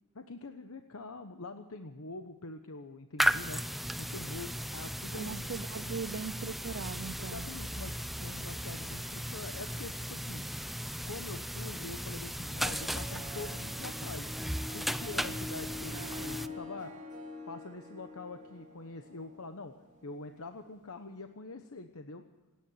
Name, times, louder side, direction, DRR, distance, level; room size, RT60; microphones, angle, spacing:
voice 1, 0.1-3.6 4.0-5.4 5.7-6.0 7.2-10.4 11.1-14.3 14.7-16.9 17.5-19.7 20.0-22.2, left 3 dB, 70° left, 7 dB, 1.1 m, -45 dB
sound 1, 3.2-16.5, equal, ahead, 0.6 m, -36 dB
voice 2, 5.2-7.5 15.3-15.4, right 5 dB, 55° right, 12 dB, 0.6 m, -39 dB
Harp, 12.4-21.0, left 2 dB, 35° right, 3.4 m, -46 dB
26.5 x 9.9 x 9.9 m, 1.1 s
head